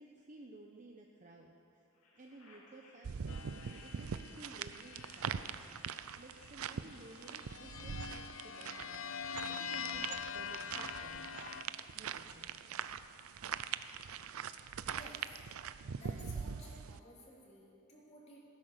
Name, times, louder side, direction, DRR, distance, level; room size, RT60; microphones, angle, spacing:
voice 1, 0.0-1.8 2.1-3.4 3.8-5.6 6.2-11.5 11.9-12.5, right 2 dB, 35° right, 1 dB, 0.9 m, -55 dB
sound 1, 1.9-10.5, left 2 dB, 90° left, 2.6 m, -65 dB
sound 2, 3.0-17.0, right 7 dB, 85° right, 0.5 m, -43 dB
sound 3, 3.3-6.0 6.8-11.6, left 7 dB, 65° left, 0.6 m, -45 dB
voice 2, 14.9-15.3 15.5-18.4, equal, 30° left, -4 dB, 3.2 m, -56 dB
16.5 x 11.0 x 6.7 m, 2.7 s
head